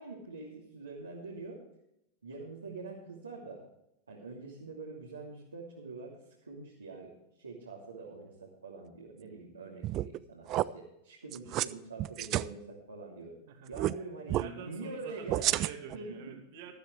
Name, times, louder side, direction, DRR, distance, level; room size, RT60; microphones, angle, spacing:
voice 1, 0.0-1.6 2.2-3.6 4.1-13.4 13.7-15.5 15.9-16.2, right 3 dB, 75° right, -4 dB, 2.8 m, -45 dB
sound 1, 9.8-10.2 10.5-10.6 11.3-11.7 12.0-12.5 13.7-13.9 14.3-14.5 15.3-16.0, right 15 dB, 35° right, 0.4 m, -30 dB
voice 2, 13.5-16.7, right 7 dB, 50° right, 4 dB, 2.3 m, -48 dB
14.5 x 13.0 x 3.3 m, 0.80 s
figure-of-eight pair, 90°, 0 cm